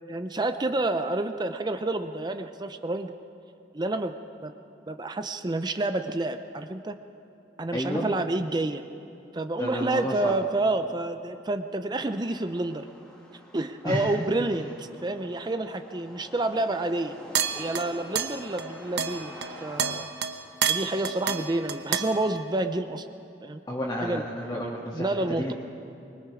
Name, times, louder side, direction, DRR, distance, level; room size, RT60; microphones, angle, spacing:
voice 1, 0.1-3.1 3.7-4.1 4.4-4.5 4.9-7.0 7.6-8.8 9.3-12.9 13.5-17.1 17.5-20.1 20.7-23.1 23.4-23.6 24.0-24.2 24.9-25.5, right 2 dB, 25° right, 8 dB, 0.6 m, -29 dB
voice 2, 7.7-8.1 9.6-10.3 13.8-14.1 23.7-25.1 25.4-25.5, equal, 20° left, -6 dB, 2.0 m, -31 dB
sound 1, 12.1-19.9, equal, 5° left, 2.1 m, -47 dB
sound 2, 17.3-18.7 19.0-22.4, right 7 dB, 80° right, 1.0 m, -29 dB
24.5 x 21.5 x 4.9 m, 2.8 s
head